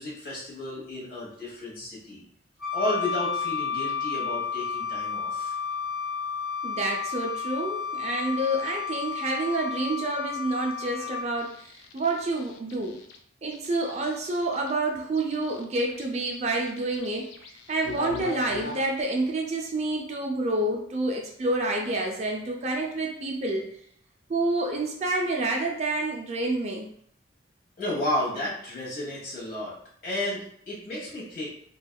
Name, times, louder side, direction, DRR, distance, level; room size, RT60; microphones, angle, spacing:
voice 1, 0.0-2.2 2.7-5.5 27.8-29.8 30.0-31.5, left 1 dB, 50° left, -6 dB, 1.2 m, -32 dB
Wind instrument woodwind instrument, 2.6-11.3, left 6 dB, ahead, 0.7 m, -32 dB
voice 2, 6.6-13.0 13.4-23.6 24.3-26.9, right 2 dB, 35° right, 0 dB, 0.4 m, -28 dB
sound 1, 11.4-13.2 13.5-14.7 15.2-19.0, left 4 dB, 75° left, 0.4 m, -41 dB
3.4 x 2.3 x 2.2 m, 0.67 s
head